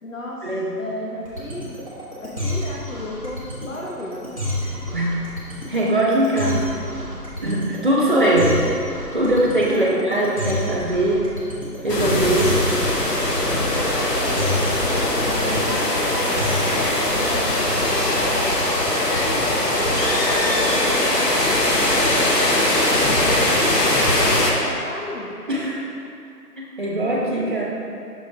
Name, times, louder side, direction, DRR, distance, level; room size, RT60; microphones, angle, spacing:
voice 1, 0.0-1.7 2.2-4.3 8.0-8.4 9.6-10.0 14.6-18.5 19.1-25.4, left 1 dB, 55° left, -3 dB, 0.7 m, -34 dB
sound 1, 1.2-16.9, left 1 dB, 20° left, 1.0 m, -29 dB
voice 2, 5.7-6.6 7.4-8.5 9.1-11.3 11.8-12.6 25.5-25.8 26.6-27.6, right 1 dB, 30° right, -5 dB, 0.9 m, -21 dB
sound 2, 11.9-24.5, left 1 dB, 85° left, 1.2 m, -20 dB
6.3 x 3.9 x 4.6 m, 2.5 s
figure-of-eight pair, 165°, 47 cm